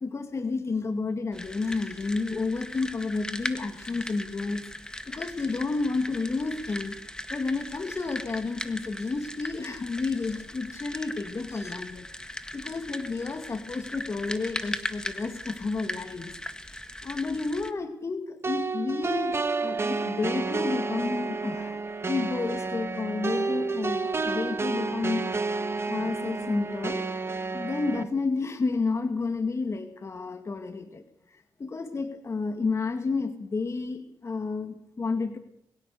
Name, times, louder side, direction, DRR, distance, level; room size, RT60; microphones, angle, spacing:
voice 1, 0.0-4.6 5.1-7.0 7.3-16.3 17.0-19.3 19.6-21.8 22.1-25.6 25.9-27.0 27.5-35.4, left 3 dB, 40° left, 7 dB, 2.0 m, -31 dB
sound 1, 1.3-17.7, left 1 dB, 10° left, 1.8 m, -39 dB
sound 2, 18.4-28.0, right 4 dB, 35° right, 1.7 m, -30 dB
22.0 x 17.0 x 7.0 m, 0.76 s
cardioid pair, 80°, 7 cm